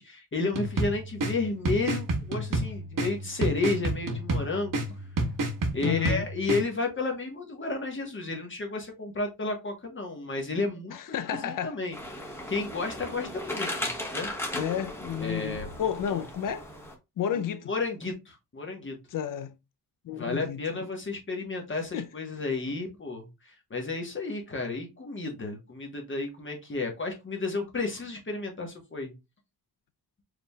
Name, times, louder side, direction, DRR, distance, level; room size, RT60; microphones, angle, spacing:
voice 1, 0.0-4.9 5.7-11.0 11.3-12.2 12.5-14.3 15.2-16.2 17.3-19.0 20.1-29.1, left 3 dB, 30° left, 1.2 m, -32 dB
sound 1, 0.5-6.6, right 2 dB, 55° right, 1.3 m, -30 dB
voice 2, 5.8-6.3 10.9-11.8 14.5-16.7 17.2-17.7 19.1-19.6 20.0-20.6 21.9-22.0, left 9 dB, 55° left, 0.5 m, -31 dB
sound 2, 11.9-16.9, left 1 dB, 5° left, 1.1 m, -36 dB
4.9 x 3.4 x 2.3 m
cardioid pair, 100°, 38 cm